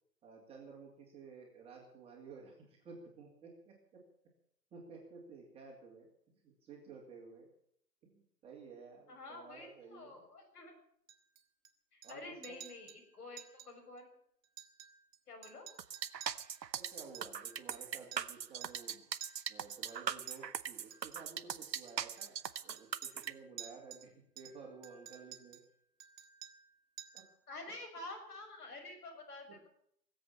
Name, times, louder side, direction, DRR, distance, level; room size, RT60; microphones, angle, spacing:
voice 1, 0.2-4.0 4.7-6.1 6.4-7.5 8.0-10.2 12.0-12.6 16.8-19.1 19.5-25.6 27.1-27.2, right 4 dB, 10° right, -1 dB, 2.5 m, -53 dB
voice 2, 9.1-10.7 11.9-14.1 15.3-15.7 27.5-29.7, left 2 dB, 65° left, 3 dB, 6.5 m, -49 dB
Chink clink, 11.1-11.7 12.0-12.2 12.4-13.0 13.4-13.7 14.0-14.1 14.4-15.2 15.4-18.4 18.6-18.9 19.2-20.4 20.9-21.2 21.9-24.1 24.4-25.7 26.0-26.7 27.0-27.4, right 10 dB, 50° right, 1.9 m, -52 dB
sound 1, 15.8-23.3, right 8 dB, 90° right, 1.0 m, -40 dB
20.0 x 8.0 x 8.8 m, 0.67 s
hypercardioid pair, 145°, 49 cm